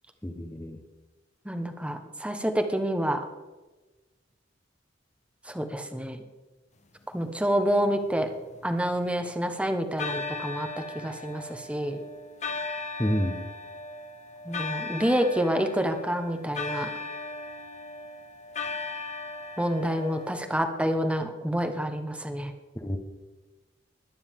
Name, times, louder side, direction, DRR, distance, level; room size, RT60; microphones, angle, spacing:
voice 1, 0.2-0.8 13.0-13.4 22.7-23.0, equal, 15° left, 6 dB, 1.1 m, -28 dB
voice 2, 1.4-3.3 5.5-6.2 7.1-8.3 8.6-10.7 10.9-12.0 14.4-16.9 19.6-22.5, equal, 5° right, 6 dB, 1.2 m, -28 dB
sound 1, 7.9-9.4 10.0-20.5, left 3 dB, 40° left, 1.0 m, -37 dB
22.0 x 9.6 x 3.7 m, 1.2 s
head